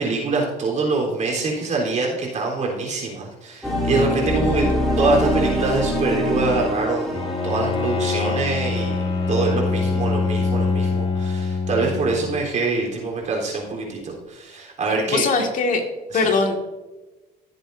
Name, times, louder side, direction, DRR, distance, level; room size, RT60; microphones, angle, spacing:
voice 1, 0.0-4.7 5.0-9.0 9.3-15.2 16.1-16.3, right 3 dB, 45° right, -2 dB, 3.7 m, -24 dB
sound 1, 3.6-10.5, equal, ahead, 3.4 m, -25 dB
voice 2, 4.4-4.8 15.1-15.8 16.1-16.6, left 4 dB, 50° left, 3 dB, 2.0 m, -22 dB
Bowed string instrument, 7.1-12.5, left 4 dB, 35° left, 1.8 m, -24 dB
16.0 x 8.1 x 2.7 m, 1.1 s
cardioid pair, 110°, 17 cm